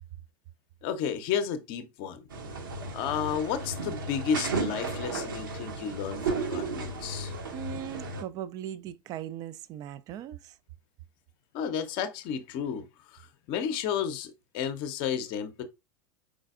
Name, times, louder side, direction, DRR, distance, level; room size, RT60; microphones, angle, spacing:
voice 1, 0.8-2.2 2.9-7.3 11.5-15.6, left 7 dB, 45° left, 0.6 m, -32 dB
sound 1, 2.3-8.2, right 3 dB, 65° right, 0.8 m, -34 dB
voice 2, 7.5-10.6, right 10 dB, 35° right, 0.3 m, -39 dB
5.0 x 4.0 x 2.4 m
figure-of-eight pair, 85°, 12 cm